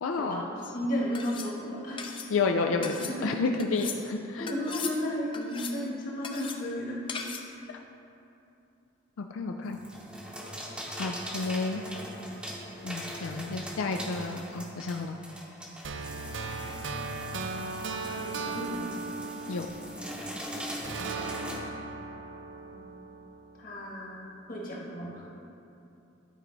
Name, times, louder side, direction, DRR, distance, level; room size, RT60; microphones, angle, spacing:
voice 1, 0.0-0.4 2.3-4.5 9.2-9.8 10.9-11.8 12.8-15.1 19.5-19.7, left 4 dB, 90° left, 4 dB, 0.4 m, -30 dB
sound 1, 0.6-0.8 1.1-1.5 2.0-2.3 2.8-3.2 3.6-4.0 4.5-5.0 5.3-5.8 6.2-6.6 7.1-7.5, left 5 dB, 25° left, 0.5 m, -38 dB
voice 2, 0.7-2.0 3.1-3.3 4.4-7.0 7.5-7.6 10.4-10.5 18.0-18.9 22.6-22.9 23.6-25.2, equal, 45° left, -3 dB, 1.4 m, -34 dB
sound 2, 9.6-21.6, equal, 5° right, 0.8 m, -41 dB
sound 3, 15.8-20.4 20.8-23.9, right 3 dB, 65° right, 0.5 m, -37 dB
11.5 x 4.6 x 3.9 m, 2.7 s
head